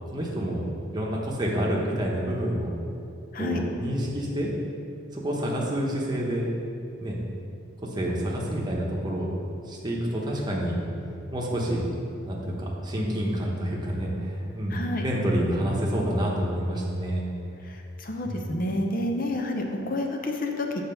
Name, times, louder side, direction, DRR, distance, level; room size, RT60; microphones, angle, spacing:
voice 1, 0.1-0.6 0.9-2.7 3.4-4.5 5.1-6.5 7.0-7.2 7.9-9.3 9.7-10.8 11.3-11.8 12.2-17.3 18.2-18.5, equal, 20° right, -3 dB, 1.0 m, -28 dB
voice 2, 14.7-15.1 17.6-20.8, left 1 dB, 45° left, 3 dB, 0.7 m, -29 dB
7.3 x 4.2 x 5.7 m, 2.6 s
head